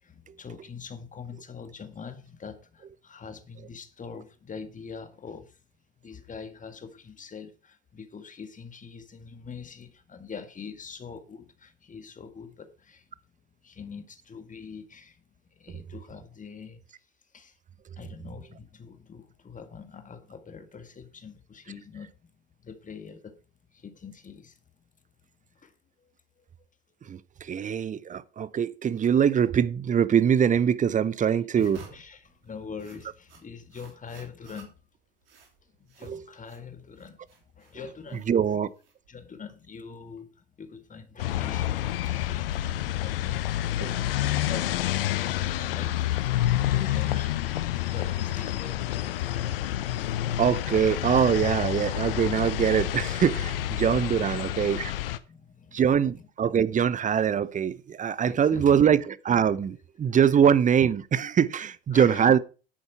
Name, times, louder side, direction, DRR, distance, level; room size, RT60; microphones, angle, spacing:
voice 1, 0.0-5.6 6.0-13.1 13.6-15.2 15.5-16.8 17.3-17.6 18.0-22.3 22.6-23.4 23.7-24.6 25.5-25.7 26.0-26.1 26.4-26.5 31.3-34.8 35.8-38.3 39.1-42.6 42.8-44.0 44.5-49.6 49.9-50.0 54.2-54.5 55.3-55.8 58.2-58.8 61.9-62.4, left 6 dB, 25° left, 1.8 m, -44 dB
voice 2, 27.0-31.8 36.0-36.2 38.3-38.7 43.8-43.9 46.8-46.9 50.4-54.9 55.7-62.4, right 8 dB, 25° right, 0.7 m, -23 dB
sound 1, 31.5-39.4, right 3 dB, 70° right, 3.2 m, -53 dB
sound 2, 41.2-55.2, left 13 dB, 70° left, 0.8 m, -28 dB
10.5 x 8.2 x 4.6 m
figure-of-eight pair, 60°, 29 cm